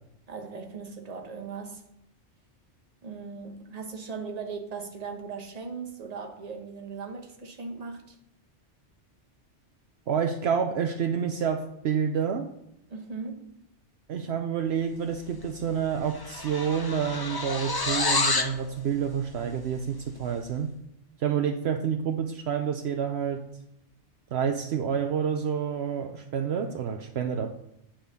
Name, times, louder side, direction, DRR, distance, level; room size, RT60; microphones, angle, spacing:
voice 1, 0.3-1.8 3.0-8.2 12.9-13.6, right 5 dB, 35° right, 1.2 m, -38 dB
voice 2, 10.1-12.5 14.1-20.7 21.2-23.4 24.3-27.5, right 7 dB, 70° right, 0.9 m, -28 dB
sound 1, 15.4-15.6 15.9-18.6, left 3 dB, 25° left, 0.5 m, -28 dB
9.4 x 4.4 x 6.7 m
omnidirectional pair, 1.2 m